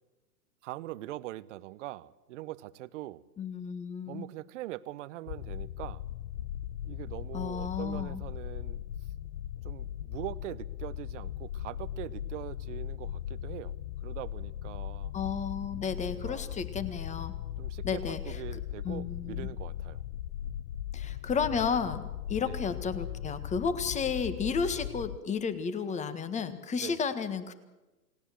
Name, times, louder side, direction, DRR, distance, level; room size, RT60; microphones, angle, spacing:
voice 1, 0.6-3.2 4.1-6.0 6.8-8.8 9.6-13.7 14.0-15.1 16.1-16.6 17.6-20.0 22.4-22.6 26.8-27.0, right 16 dB, 45° right, 17 dB, 1.0 m, -42 dB
voice 2, 3.4-4.2 7.3-8.2 15.1-17.3 17.8-18.4 18.8-19.5 20.9-27.5, left 6 dB, 15° left, 11 dB, 1.7 m, -32 dB
sound 1, 5.3-25.2, left 11 dB, 50° left, 0.8 m, -38 dB
29.0 x 18.5 x 7.7 m, 1.1 s
hypercardioid pair, 130°, 49 cm